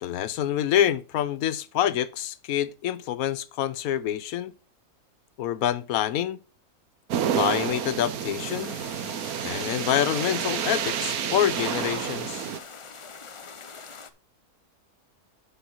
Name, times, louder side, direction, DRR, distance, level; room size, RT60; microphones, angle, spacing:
voice 1, 0.0-4.5 5.4-6.4 7.3-8.8 9.4-12.5, left 11 dB, 75° left, 1.1 m, -26 dB
sound 1, 7.1-12.6, right 8 dB, 85° right, 1.3 m, -29 dB
sound 2, 8.4-14.1, left 5 dB, 55° left, 0.3 m, -44 dB
9.9 x 5.3 x 4.3 m
omnidirectional pair, 1.5 m